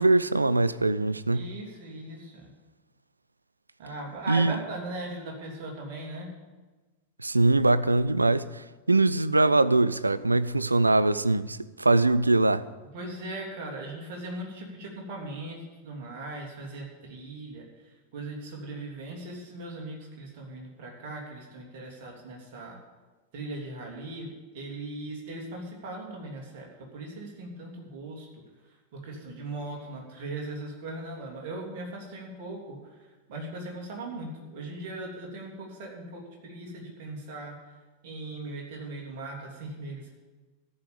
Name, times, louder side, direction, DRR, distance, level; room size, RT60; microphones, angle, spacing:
voice 1, 0.0-1.5 4.3-4.6 7.2-12.6, right 2 dB, 80° right, 0.4 m, -22 dB
voice 2, 1.3-2.5 3.8-6.3 12.9-17.6 18.1-22.8 23.3-28.4 28.9-32.8 33.3-37.6 38.0-40.1, right 2 dB, 50° right, 3.1 m, -39 dB
14.0 x 5.5 x 8.9 m
figure-of-eight pair, 90°, 0 cm